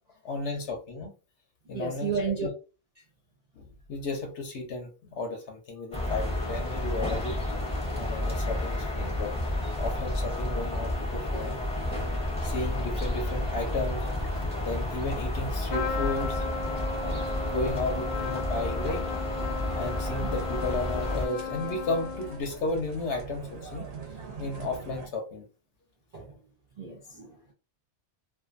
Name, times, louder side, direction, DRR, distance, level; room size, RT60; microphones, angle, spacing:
voice 1, 0.2-1.1 1.7-2.1 2.4-2.5 3.6-7.4 7.9-9.3 9.8-11.8 12.4-14.0 14.3-16.4 17.0-19.1 19.7-23.9 24.4-25.5, left 2 dB, 75° left, 1.0 m, -34 dB
voice 2, 1.7-2.5 20.2-20.4 26.1-26.4 26.8-27.5, right 5 dB, 45° right, 0.6 m, -33 dB
sound 1, 5.9-21.3, left 1 dB, 5° left, 0.7 m, -31 dB
Trumpet, 15.7-22.6, left 4 dB, 50° left, 0.7 m, -35 dB
sound 2, 19.4-25.1, right 4 dB, 65° right, 0.9 m, -43 dB
2.6 x 2.4 x 2.4 m
omnidirectional pair, 1.2 m